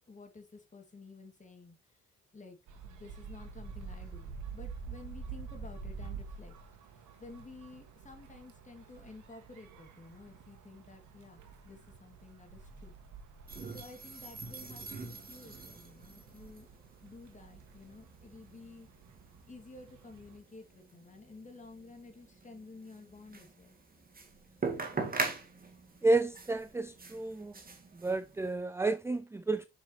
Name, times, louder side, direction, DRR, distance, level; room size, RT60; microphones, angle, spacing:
voice 1, 0.1-2.0 2.3-2.6 2.8-6.6 6.9-12.9 13.7-16.7 17.0-18.9 19.5-23.8, left 3 dB, 25° left, 2.9 m, -52 dB
sound 1, 2.7-20.4, right 5 dB, 75° right, 2.0 m, -49 dB
sound 2, 13.5-28.5, right 3 dB, 30° right, 2.3 m, -43 dB
voice 2, 26.0-27.5 27.9-29.7, right 2 dB, 10° right, 0.4 m, -31 dB
7.2 x 6.3 x 3.3 m
cardioid pair, 90°, 30 cm